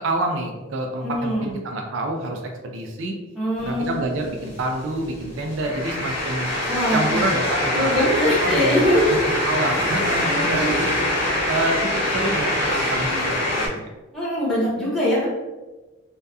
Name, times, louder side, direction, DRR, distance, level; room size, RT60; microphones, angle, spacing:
voice 1, 0.0-3.1 3.6-6.5 6.9-8.0 8.4-8.8 9.2-10.9 11.5-13.9, right 2 dB, 75° right, 2 dB, 0.4 m, -27 dB
voice 2, 1.0-1.5 3.3-4.3 6.7-7.2 7.7-9.1 10.2-11.0 14.1-15.3, left 1 dB, ahead, -10 dB, 0.8 m, -23 dB
sound 1, 3.6-13.7, left 1 dB, 90° left, 1.1 m, -24 dB
2.7 x 2.3 x 2.3 m, 1.2 s
head